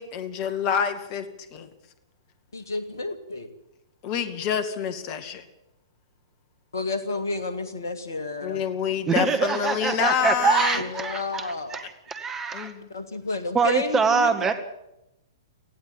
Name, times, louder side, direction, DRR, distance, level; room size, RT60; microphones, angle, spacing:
voice 1, 0.0-1.7 4.0-5.4 8.4-10.8 12.5-12.9, left 7 dB, 35° left, 10 dB, 2.2 m, -27 dB
voice 2, 2.5-3.5 6.7-8.6 10.8-11.8 12.9-14.5, left 3 dB, 65° left, 10 dB, 2.4 m, -31 dB
voice 3, 9.1-11.8 12.1-12.7 13.5-14.5, right 5 dB, 15° right, 8 dB, 1.8 m, -24 dB
19.0 x 15.0 x 9.0 m, 0.88 s
figure-of-eight pair, 115°, 2 cm